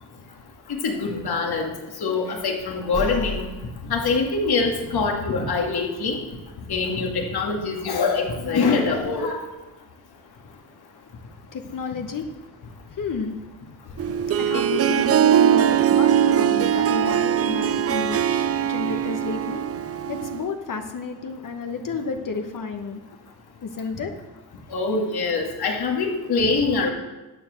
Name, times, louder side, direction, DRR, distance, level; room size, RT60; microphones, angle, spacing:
voice 1, 0.7-1.7 2.0-3.5 3.9-6.2 6.7-9.4 24.7-26.9, left 4 dB, 70° left, 1 dB, 2.2 m, -24 dB
voice 2, 10.1-19.7 20.0-23.0 23.6-24.1, left 4 dB, 55° left, 5 dB, 1.1 m, -32 dB
Harp, 14.0-20.5, right 9 dB, 40° right, 0.4 m, -21 dB
11.5 x 7.2 x 6.4 m, 1.1 s
cardioid pair, 75°, 40 cm